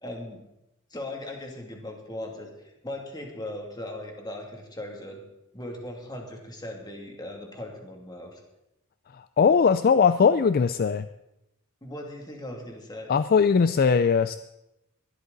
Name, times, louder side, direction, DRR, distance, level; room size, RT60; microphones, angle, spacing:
voice 1, 0.0-0.4 0.9-5.2 5.5-8.4 11.8-13.1, left 1 dB, 20° left, 1 dB, 2.6 m, -38 dB
voice 2, 9.1-11.1 13.1-14.4, left 6 dB, 45° left, 13 dB, 0.4 m, -20 dB
21.0 x 12.5 x 4.1 m, 0.90 s
head